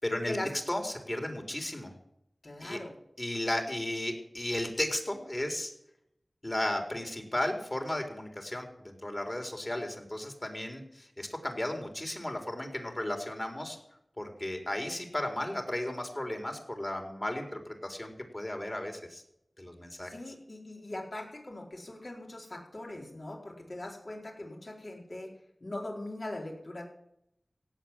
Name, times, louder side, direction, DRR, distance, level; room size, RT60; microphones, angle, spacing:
voice 1, 0.0-1.9 2.6-2.8 3.2-5.7 6.4-13.8 14.2-19.2 19.6-20.3, left 1 dB, 35° left, 3 dB, 4.2 m, -34 dB
voice 2, 2.4-2.9 20.1-25.3 25.6-26.8, left 1 dB, 55° left, 0 dB, 4.6 m, -40 dB
17.0 x 8.2 x 7.6 m, 0.77 s
wide cardioid pair, 45°, 0 cm